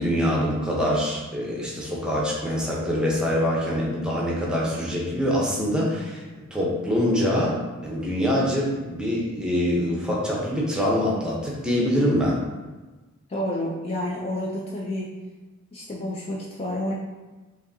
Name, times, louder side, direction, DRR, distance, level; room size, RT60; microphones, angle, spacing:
voice 1, 0.0-6.2 6.5-12.4, equal, 5° right, -4 dB, 0.7 m, -24 dB
voice 2, 13.3-15.2 15.7-16.9, left 1 dB, 30° left, -3 dB, 0.4 m, -29 dB
5.1 x 2.7 x 2.6 m, 1.2 s
head